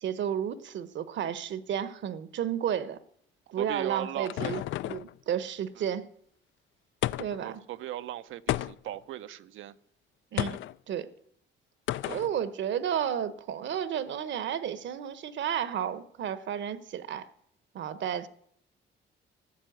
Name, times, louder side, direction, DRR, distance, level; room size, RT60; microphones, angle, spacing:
voice 1, 0.0-3.0 3.5-6.1 7.2-7.6 10.3-10.6 10.9-11.1 12.1-17.2 17.7-18.3, right 9 dB, 65° right, 1.1 m, -32 dB
sound 1, 3.6-5.1 7.0-7.5 8.5-9.0 10.4-10.7 11.9-12.3, left 14 dB, 75° left, 0.4 m, -32 dB
voice 2, 3.6-4.6 5.8-5.9 7.4-9.8 12.1-12.2, right 13 dB, 85° right, 0.7 m, -38 dB
13.5 x 7.6 x 9.2 m
cardioid pair, 90°, 20 cm